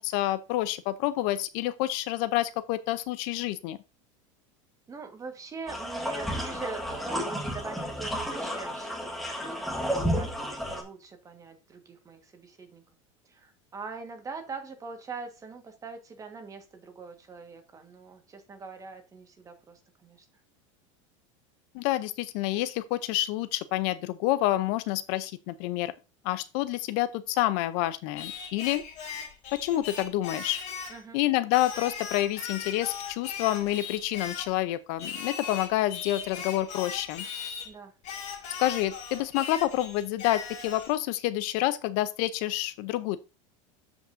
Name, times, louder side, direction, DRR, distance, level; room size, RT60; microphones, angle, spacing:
voice 1, 0.0-3.8 21.7-25.9 26.2-28.8 29.5-30.6 31.1-37.3 38.6-43.2, left 15 dB, 60° left, 0.6 m, -28 dB
voice 2, 4.9-12.8 13.2-20.3 30.9-31.2 37.6-37.9, right 4 dB, 20° right, 1.4 m, -43 dB
sound 1, 5.7-10.8, equal, ahead, 1.5 m, -32 dB
Singing, 28.2-31.0 31.5-34.5 35.0-37.7 38.0-40.9, left 6 dB, 45° left, 2.2 m, -38 dB
12.5 x 5.4 x 2.6 m
supercardioid pair, 135°, 17 cm